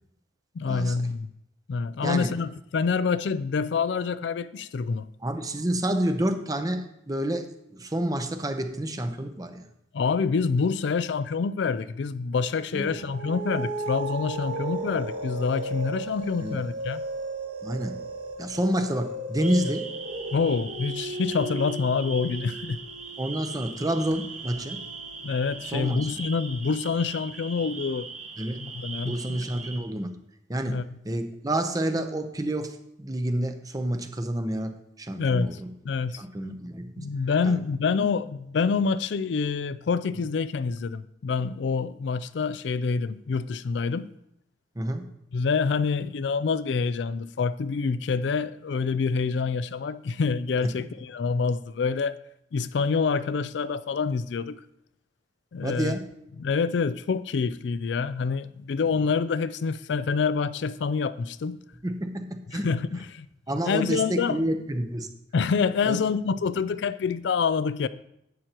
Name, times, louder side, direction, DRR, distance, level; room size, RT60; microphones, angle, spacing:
voice 1, 0.6-1.3 1.7-5.1 9.9-17.0 20.3-22.8 25.2-28.1 28.5-29.4 30.7-30.8 35.2-35.6 35.8-36.2 37.0-44.1 45.3-52.2 52.5-54.6 55.5-55.9 56.4-61.6 62.6-63.3 63.6-64.4 65.3-67.9, left 5 dB, 65° left, 0.4 m, -27 dB
voice 2, 5.2-9.7 12.7-13.0 16.4-16.6 17.6-17.9 18.4-19.9 23.2-24.8 25.7-26.0 28.4-28.6 29.0-30.1 30.5-35.7 36.2-37.0 37.4-37.6 44.8-45.0 50.6-50.7 55.6-56.1 61.8-62.7 63.5-65.1 65.8-66.0, right 1 dB, 20° right, 0.8 m, -29 dB
sound 1, 13.0-25.8, right 1 dB, 70° right, 1.6 m, -36 dB
sound 2, 19.4-29.8, right 4 dB, 40° right, 1.3 m, -40 dB
11.0 x 9.1 x 3.0 m
head